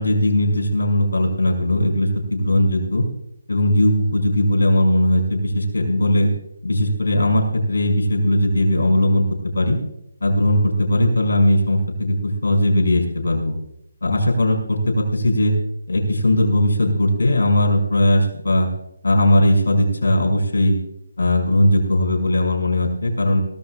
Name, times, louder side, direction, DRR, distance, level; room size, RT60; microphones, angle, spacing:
voice 1, 0.0-3.0 3.5-6.3 6.6-9.3 9.5-9.8 10.2-13.6 14.0-15.5 15.9-18.7 19.0-20.8 21.2-23.4, left 1 dB, 90° left, 0 dB, 5.5 m, -18 dB
24.0 x 17.0 x 2.3 m, 0.79 s
hypercardioid pair, 170°, 0 cm